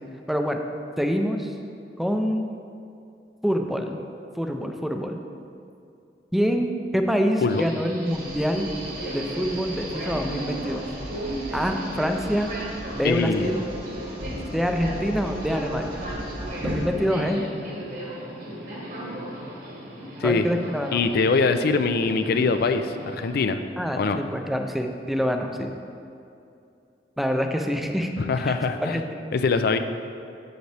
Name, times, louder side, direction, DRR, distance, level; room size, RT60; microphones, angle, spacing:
voice 1, 0.3-0.6 1.0-1.5 2.0-2.5 3.4-4.0 4.4-5.2 6.3-8.7 9.1-10.9 11.5-12.5 12.9-13.7 14.5-16.0 16.6-17.5 20.2-21.0 23.8-25.7 27.2-28.1 28.4-29.1, equal, ahead, 4 dB, 0.5 m, -26 dB
Subway metro underground, 7.5-23.3, right 1 dB, 55° right, 1.5 m, -36 dB
sound 1, 8.0-16.9, right 1 dB, 30° right, 1.1 m, -39 dB
voice 2, 13.0-13.5 20.2-20.4 20.9-23.6 24.0-24.2 28.2-29.0 29.3-29.8, left 4 dB, 60° left, 8 dB, 0.4 m, -23 dB
sound 2, 14.2-14.8 16.6-17.5, equal, 80° right, 1.2 m, -32 dB
8.0 x 7.8 x 3.3 m, 2.6 s
head